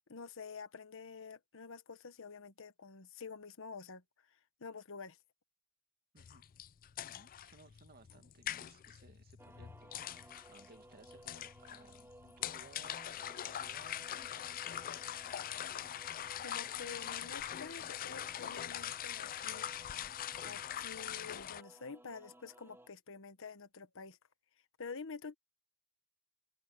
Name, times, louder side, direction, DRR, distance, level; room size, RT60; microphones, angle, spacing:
voice 1, 0.0-5.2 16.4-19.7 20.4-24.2 24.8-25.4, left 5 dB, 65° left, 1.2 m, -48 dB
voice 2, 6.1-6.5 7.0-14.8, right 3 dB, 45° right, 2.1 m, -61 dB
sound 1, 6.2-21.6, left 11 dB, 40° left, 0.4 m, -43 dB
sound 2, 9.4-22.9, right 1 dB, 10° right, 3.1 m, -59 dB
open air
head